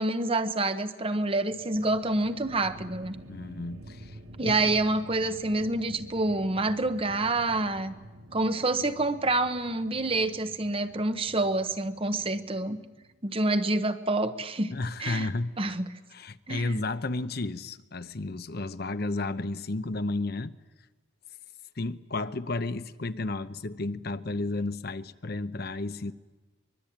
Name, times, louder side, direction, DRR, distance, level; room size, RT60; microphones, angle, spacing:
voice 1, 0.0-3.2 4.4-7.9 8.3-12.8 13.2-14.7 15.0-15.3 15.6-15.9 16.5-16.8, right 2 dB, 30° right, 1.0 m, -27 dB
sound 1, 1.2-13.5, right 1 dB, 75° right, 2.2 m, -49 dB
voice 2, 3.3-4.7 14.7-15.5 16.1-20.6 21.8-26.1, left 2 dB, 50° left, 0.8 m, -32 dB
24.0 x 22.0 x 8.7 m
head